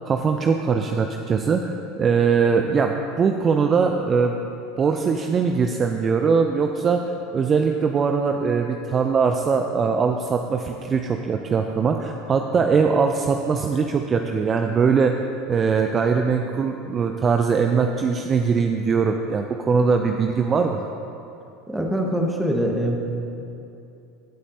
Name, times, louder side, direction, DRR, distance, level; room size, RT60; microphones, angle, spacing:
voice 1, 0.0-4.4 4.8-7.0 7.3-15.1 15.5-20.9, right 5 dB, 30° right, 5 dB, 0.5 m, -21 dB
voice 2, 21.7-23.0, equal, 5° right, 1 dB, 1.4 m, -23 dB
17.0 x 8.3 x 2.8 m, 2.7 s
figure-of-eight pair, 75°, 0 cm